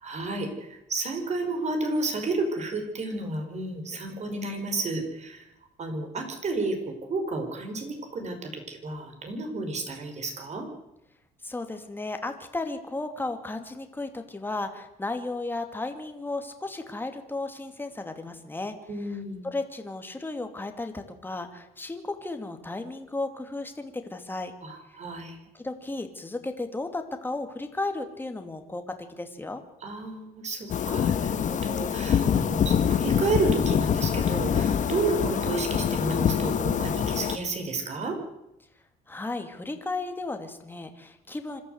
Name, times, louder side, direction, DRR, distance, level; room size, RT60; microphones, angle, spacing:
voice 1, 0.0-5.5 5.8-10.7 18.9-19.5 24.6-25.4 29.8-38.2, right 3 dB, 40° right, 5 dB, 5.5 m, -31 dB
voice 2, 11.4-18.8 19.4-24.5 25.5-29.6 39.1-41.6, left 2 dB, 10° left, 6 dB, 2.6 m, -34 dB
sound 1, 30.7-37.4, left 8 dB, 50° left, 1.5 m, -25 dB
26.0 x 13.5 x 8.1 m, 0.86 s
cardioid pair, 110°, 17 cm